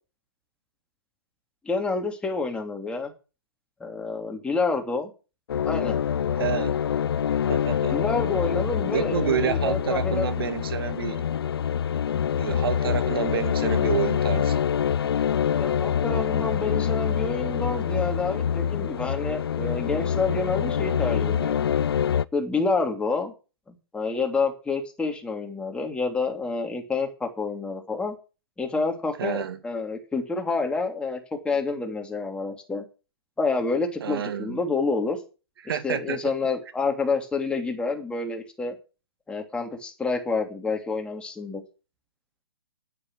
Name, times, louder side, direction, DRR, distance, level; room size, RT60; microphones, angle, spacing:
voice 1, 1.6-3.1 3.8-5.1 5.6-6.0 7.9-10.3 15.5-21.6 22.3-23.3 23.9-28.2 28.6-31.2 31.4-32.8 33.4-35.2 35.6-38.7 39.3-41.6, left 4 dB, 5° left, 2.9 m, -28 dB
sound 1, 5.5-22.2, left 8 dB, 65° left, 0.6 m, -25 dB
voice 2, 6.4-6.8 7.5-8.0 8.9-11.3 12.4-14.7 29.2-29.6 34.0-34.6 35.6-36.3, right 8 dB, 65° right, 2.2 m, -29 dB
9.5 x 9.0 x 8.5 m
hypercardioid pair, 130°, 13 cm